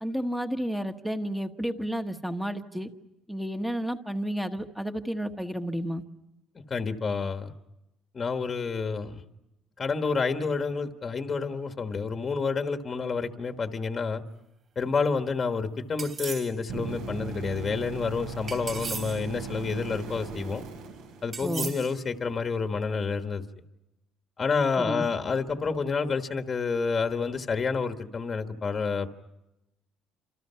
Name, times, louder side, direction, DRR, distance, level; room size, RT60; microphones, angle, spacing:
voice 1, 0.0-2.9 3.3-6.0 21.4-21.7 24.8-25.1, equal, ahead, 6 dB, 1.3 m, -31 dB
voice 2, 6.7-7.5 8.1-9.2 9.8-14.2 14.7-20.6 21.2-23.4 24.4-29.1, left 5 dB, 20° left, 7 dB, 1.4 m, -29 dB
sound 1, 16.0-16.5 18.5-19.2 21.3-22.0, right 6 dB, 30° right, 3.4 m, -37 dB
sound 2, 16.7-21.8 25.7-25.8, right 4 dB, 75° right, 5.7 m, -38 dB
29.5 x 27.5 x 5.7 m, 0.93 s
cardioid pair, 175°, 0 cm